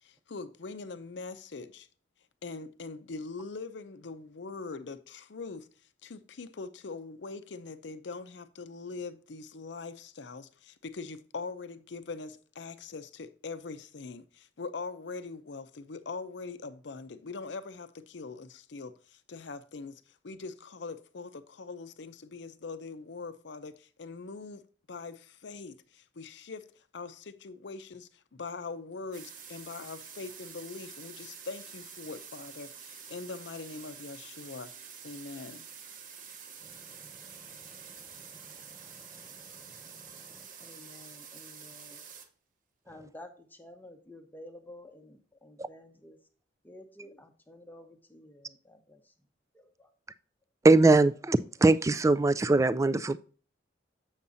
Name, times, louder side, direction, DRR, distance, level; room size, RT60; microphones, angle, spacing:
voice 1, 0.0-1.9 2.4-5.7 6.0-24.6 24.9-26.7 26.9-34.7 35.0-35.7 37.0-37.1, left 4 dB, 65° left, 0.6 m, -42 dB
sound 1, 29.1-42.3, right 6 dB, 45° right, 0.9 m, -48 dB
voice 2, 40.6-42.0 42.9-46.2 46.6-49.0 49.5-49.9, left 1 dB, 10° left, 0.8 m, -51 dB
voice 3, 50.6-53.2, right 2 dB, 15° right, 0.3 m, -22 dB
7.3 x 7.0 x 2.6 m
head